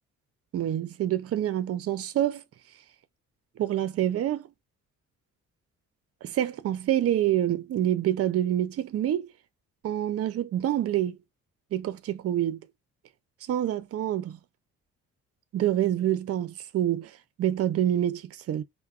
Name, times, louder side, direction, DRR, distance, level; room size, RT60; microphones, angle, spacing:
voice 1, 0.5-2.4 3.6-4.5 6.2-9.3 9.8-11.2 11.7-12.6 13.5-14.4 15.5-18.6, right 11 dB, 50° right, 0.5 m, -27 dB
3.4 x 2.1 x 2.3 m
cardioid pair, 90°, 30 cm